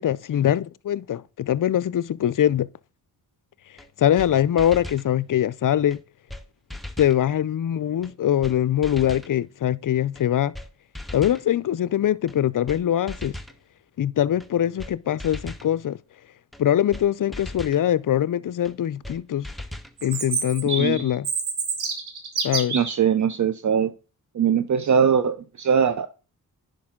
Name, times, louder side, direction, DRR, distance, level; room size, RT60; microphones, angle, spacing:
voice 1, 0.0-2.7 4.0-6.0 7.0-10.5 11.1-13.4 14.0-16.0 16.6-19.5 20.0-21.3 22.4-22.8, left 11 dB, 55° left, 0.5 m, -22 dB
sound 1, 3.8-3.9 4.2-4.3 4.6-5.1 5.9-6.0 6.3-6.4 6.7-7.2 8.0-8.1 8.4-8.6 8.8-9.3 10.1-10.2 10.5-10.7 10.9-11.4 12.3-12.4 12.7-12.8 13.1-13.6 14.4-14.5 14.8-14.9 15.2-15.7 16.5-16.6 16.9-17.1 17.3-17.8 18.6-18.7 19.0-19.2 19.4-19.9, left 1 dB, ahead, 1.0 m, -37 dB
Chirp tweet, 20.0-23.0, right 5 dB, 75° right, 1.9 m, -28 dB
voice 2, 22.7-23.9 24.3-26.1, right 7 dB, 50° right, 0.7 m, -21 dB
10.5 x 5.2 x 3.7 m
cardioid pair, 60°, 38 cm